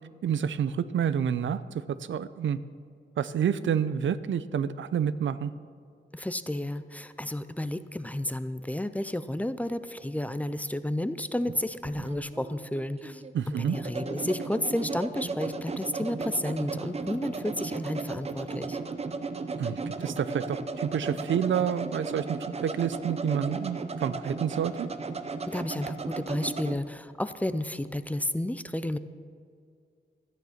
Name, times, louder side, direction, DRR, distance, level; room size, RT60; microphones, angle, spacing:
voice 1, 0.2-1.6 1.9-2.6 3.2-5.5 13.3-13.8 19.6-22.3 22.6-24.9, right 8 dB, 80° right, 15 dB, 0.5 m, -28 dB
voice 2, 6.1-18.8 25.5-29.0, left 1 dB, 10° left, 12 dB, 0.4 m, -32 dB
sound 1, 11.5-26.8, right 4 dB, 35° right, 0.6 m, -35 dB
13.5 x 9.4 x 5.8 m, 2.3 s
wide cardioid pair, 140°, 19 cm